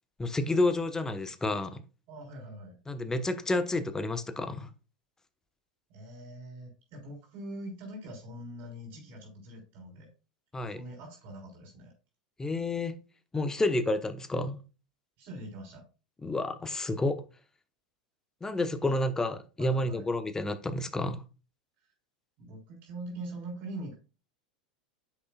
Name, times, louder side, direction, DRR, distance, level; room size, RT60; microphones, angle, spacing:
voice 1, 0.2-1.8 2.9-4.7 10.5-10.8 12.4-13.0 13.3-14.6 16.2-17.2 18.4-21.3, left 2 dB, 15° left, 1.0 m, -30 dB
voice 2, 2.1-2.8 5.9-10.1 10.7-11.9 15.2-15.8 18.8-18.9 19.6-20.1 22.4-24.0, right 1 dB, 50° right, 3.9 m, -43 dB
9.8 x 6.6 x 2.4 m
hypercardioid pair, 85°, 4 cm